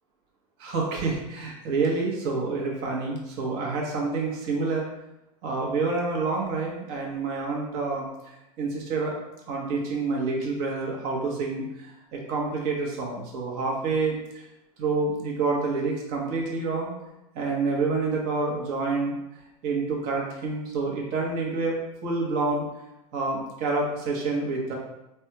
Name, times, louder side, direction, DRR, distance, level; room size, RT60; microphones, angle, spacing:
voice 1, 0.6-4.9 5.4-8.1 8.6-9.1 9.5-14.5 14.8-16.9 17.3-19.2 19.6-22.6 23.1-24.8, right 3 dB, 55° right, -2 dB, 1.0 m, -28 dB
3.3 x 2.2 x 2.9 m, 0.91 s
hypercardioid pair, 100°, 19 cm